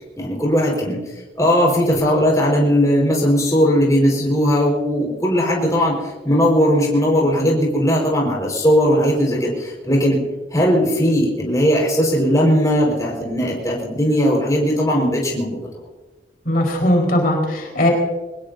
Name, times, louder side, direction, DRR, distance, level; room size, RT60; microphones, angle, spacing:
voice 1, 0.2-1.0 1.4-10.2 10.5-15.7, equal, 20° left, -2 dB, 4.8 m, -18 dB
voice 2, 16.5-17.9, left 1 dB, 55° left, 1 dB, 4.3 m, -18 dB
24.5 x 20.0 x 2.7 m, 1.2 s
head